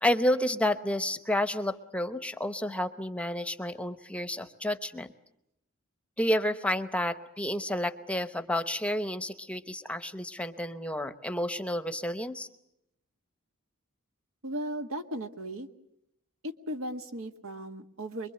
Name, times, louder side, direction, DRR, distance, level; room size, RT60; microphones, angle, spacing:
voice 1, 0.0-5.1 6.2-12.5, left 1 dB, 5° left, 11 dB, 0.9 m, -30 dB
voice 2, 14.4-15.7 16.4-18.3, right 1 dB, 75° right, 7 dB, 1.7 m, -36 dB
25.0 x 22.5 x 7.8 m, 0.81 s
head